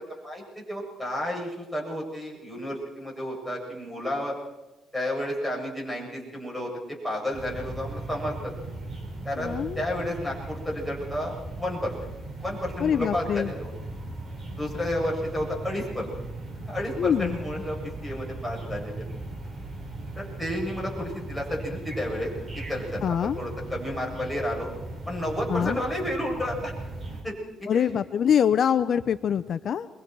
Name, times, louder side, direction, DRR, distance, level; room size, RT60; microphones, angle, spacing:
voice 1, 0.1-4.4 4.9-6.7 7.0-8.5 9.2-11.9 12.4-13.7 14.6-16.1 16.7-19.0 20.2-22.3 22.7-24.7 25.1-26.7 27.2-27.3 27.6-27.9, left 1 dB, 5° left, -3 dB, 7.8 m, -31 dB
sound 1, 7.3-27.2, right 2 dB, 40° right, 5.0 m, -38 dB
voice 2, 9.4-9.9 12.8-13.5 17.0-17.4 23.0-23.4 25.5-25.8 27.7-29.9, left 8 dB, 60° left, 12 dB, 0.7 m, -24 dB
27.5 x 23.0 x 4.7 m, 1.1 s
cardioid pair, 90°, 0 cm